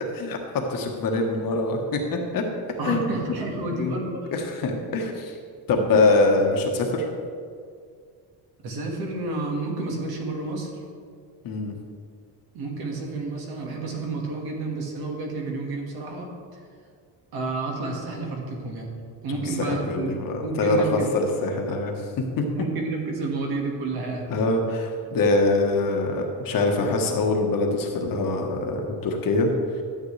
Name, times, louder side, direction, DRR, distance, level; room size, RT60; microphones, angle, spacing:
voice 1, 0.1-2.4 2.8-3.0 3.6-4.0 4.3-5.4 5.7-7.1 11.4-11.7 19.3-20.9 21.1-22.4 24.3-29.8, left 2 dB, 50° left, 2 dB, 1.3 m, -24 dB
voice 2, 2.8-4.3 5.9-6.1 8.6-10.8 12.5-16.3 17.3-18.9 19.2-20.1 20.4-21.1 22.5-24.3, right 3 dB, 60° right, 0 dB, 1.8 m, -30 dB
12.5 x 7.9 x 3.3 m, 2.1 s
cardioid pair, 160°, 42 cm